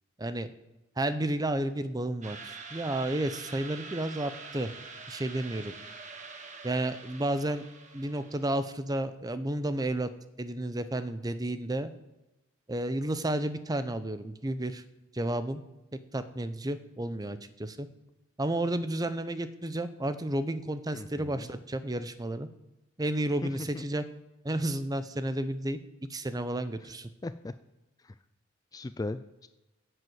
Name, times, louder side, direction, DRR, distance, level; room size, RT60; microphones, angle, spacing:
voice 1, 0.2-0.5 1.0-4.7 5.1-5.7 6.6-7.6 7.9-10.1 10.4-11.9 12.7-14.8 15.1-15.6 16.1-17.9 18.4-22.5 23.0-24.0 24.4-25.8 26.1-27.1, right 1 dB, 20° right, 12 dB, 0.6 m, -32 dB
sound 1, 2.2-8.5, right 4 dB, 35° right, 1.4 m, -45 dB
voice 2, 20.9-21.5 23.4-23.8 27.2-27.5 28.0-28.1 28.7-29.5, left 2 dB, 20° left, 12 dB, 0.3 m, -38 dB
10.5 x 7.9 x 7.9 m, 0.99 s
head